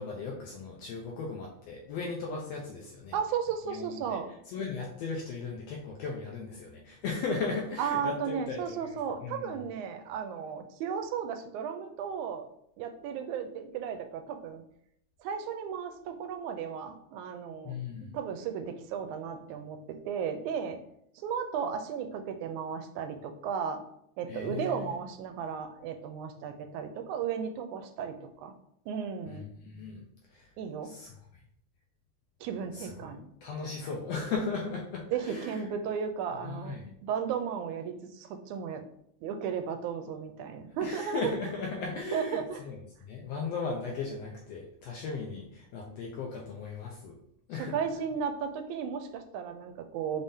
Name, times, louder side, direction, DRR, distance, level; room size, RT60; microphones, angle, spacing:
voice 1, 0.0-3.2 3.7-4.2 4.5-8.9 9.2-9.5 17.6-18.1 24.3-25.0 29.3-30.1 30.3-30.5 30.8-31.1 32.7-32.9 33.4-35.6 36.4-36.9 40.8-47.1 47.5-47.8, left 4 dB, 80° left, -1 dB, 1.5 m, -37 dB
voice 2, 3.1-4.3 7.8-12.5 12.8-14.6 15.2-17.7 18.1-20.8 21.2-23.8 24.2-28.5 28.9-29.4 30.6-30.9 32.4-33.2 35.1-38.8 39.2-41.3 42.1-42.6 47.6-50.2, right 7 dB, 85° right, 7 dB, 2.0 m, -35 dB
5.3 x 3.5 x 2.7 m, 0.73 s
omnidirectional pair, 3.4 m